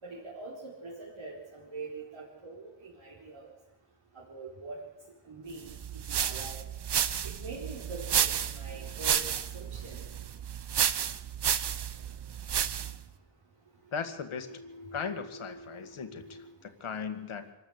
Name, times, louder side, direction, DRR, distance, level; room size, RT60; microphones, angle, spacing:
voice 1, 0.0-3.5 4.1-4.8 5.2-6.6 7.2-10.0 14.5-16.4, right 3 dB, 70° right, -5 dB, 4.7 m, -44 dB
sound 1, 5.7-13.0, right 8 dB, 55° right, 0.9 m, -31 dB
voice 2, 13.9-14.5 14.9-17.5, left 6 dB, 75° left, 8 dB, 2.1 m, -37 dB
25.5 x 13.5 x 8.2 m, 1.0 s
wide cardioid pair, 165°, 50 cm